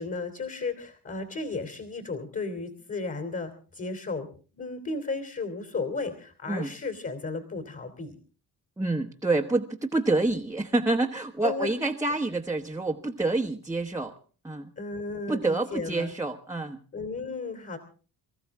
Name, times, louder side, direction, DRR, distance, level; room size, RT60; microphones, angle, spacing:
voice 1, 0.0-4.3 4.5-8.2 11.4-11.7 12.1-12.2 14.8-16.1 16.9-17.8, left 3 dB, 35° left, 7 dB, 3.1 m, -34 dB
voice 2, 8.8-14.1 14.4-14.7 15.3-16.8, right 2 dB, 10° right, 0 dB, 1.2 m, -27 dB
26.0 x 14.5 x 3.6 m, 0.37 s
cardioid pair, 105°, 39 cm